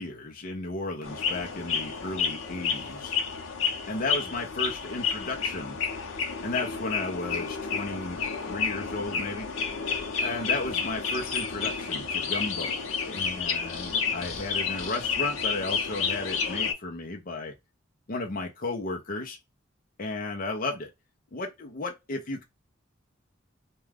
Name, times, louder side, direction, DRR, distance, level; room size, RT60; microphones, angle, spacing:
voice 1, 0.0-3.1 3.9-5.8 6.4-8.2 8.5-9.5 10.2-17.5 18.1-19.4 20.0-20.9 21.3-22.4, left 2 dB, 45° left, 0.6 m, -34 dB
sound 1, 1.0-16.7, left 6 dB, 80° left, 0.7 m, -30 dB
2.3 x 2.2 x 3.3 m
head